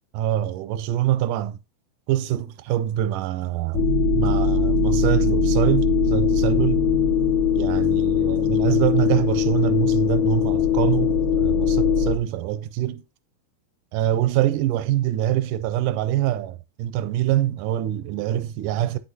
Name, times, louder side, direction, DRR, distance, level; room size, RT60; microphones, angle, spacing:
voice 1, 0.2-1.6 2.1-3.9 4.1-6.9 7.6-13.0 13.9-19.0, right 12 dB, 90° right, 2.2 m, -24 dB
sound 1, 3.7-12.2, left 6 dB, 65° left, 1.2 m, -20 dB
9.4 x 6.5 x 2.8 m
omnidirectional pair, 3.7 m